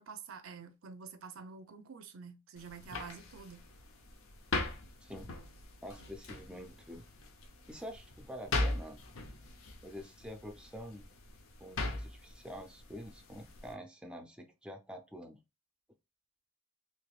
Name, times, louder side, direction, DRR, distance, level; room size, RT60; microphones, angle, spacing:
voice 1, 0.0-3.6, right 5 dB, 70° right, 0.6 m, -48 dB
sound 1, 2.6-13.7, left 2 dB, 70° left, 0.7 m, -40 dB
voice 2, 5.8-7.1 7.7-9.0 9.8-11.1 11.6-15.4, equal, 5° right, 0.4 m, -47 dB
3.3 x 3.0 x 2.3 m
head